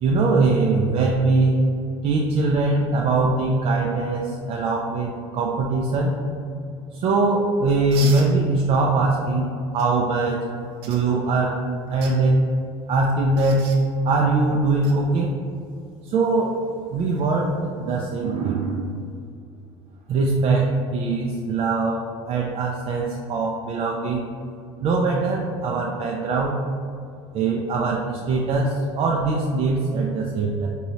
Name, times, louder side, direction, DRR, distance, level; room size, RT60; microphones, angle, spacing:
voice 1, 0.0-1.6 2.0-6.1 6.9-10.4 10.8-12.4 12.9-13.7 14.0-15.3 16.0-16.6 16.9-18.9 20.1-24.3 24.8-26.6 27.3-30.7, right 3 dB, 45° right, -1 dB, 0.4 m, -22 dB
sound 1, 7.9-8.3 9.8-9.9 10.8-11.0 11.8-12.1 13.4-13.8 14.8-14.9 17.0-17.2, right 5 dB, 85° right, 0.7 m, -36 dB
4.5 x 2.7 x 3.0 m, 2.4 s
supercardioid pair, 100°, 13 cm